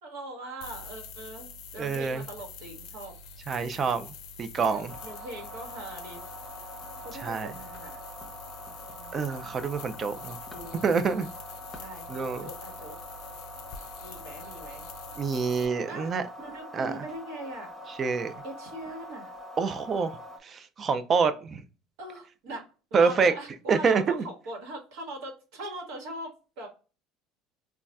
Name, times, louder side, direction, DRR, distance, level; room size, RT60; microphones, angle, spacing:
voice 1, 0.0-1.5 1.7-3.1 4.6-6.2 7.0-8.0 8.9-9.3 10.5-11.3 11.7-13.1 14.0-14.8 15.9-16.1 16.4-17.7 18.4-19.3 22.0-26.7, right 1 dB, 80° right, 1.2 m, -41 dB
sound 1, 0.6-15.7, left 4 dB, 70° left, 0.5 m, -45 dB
voice 2, 1.8-2.2 3.5-4.9 7.2-7.5 9.1-10.4 10.8-11.3 12.1-12.5 15.2-16.2 16.7-17.0 18.0-18.3 19.6-20.1 20.4-21.6 22.9-23.3 23.7-24.3, right 5 dB, 35° right, 0.4 m, -26 dB
sound 2, 4.9-20.4, left 1 dB, 20° left, 0.8 m, -44 dB
3.9 x 2.3 x 2.2 m
supercardioid pair, 105°, 0 cm